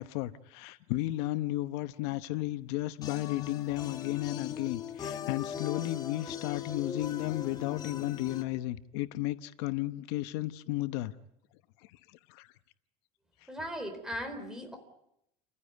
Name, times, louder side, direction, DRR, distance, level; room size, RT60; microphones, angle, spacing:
voice 1, 0.0-11.1 12.3-12.5, left 16 dB, 75° left, 1.0 m, -33 dB
sound 1, 3.0-8.4, left 9 dB, 30° left, 1.5 m, -39 dB
voice 2, 13.5-14.8, equal, 5° right, 4.5 m, -38 dB
29.5 x 15.5 x 9.4 m
cardioid pair, 155°, 14 cm